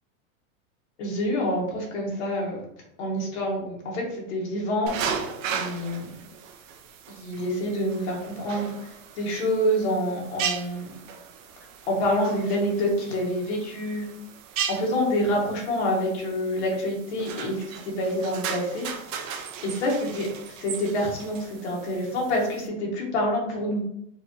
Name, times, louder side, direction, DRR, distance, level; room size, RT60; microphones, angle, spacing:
voice 1, 1.0-2.6 3.0-5.2 5.5-6.1 7.1-10.9 11.9-14.1 14.7-18.9 19.2-23.8, equal, 55° left, -2 dB, 1.5 m, -27 dB
sound 1, 4.9-22.7, right 7 dB, 75° right, 0.6 m, -37 dB
4.6 x 2.6 x 2.7 m, 0.74 s
supercardioid pair, 180°, 39 cm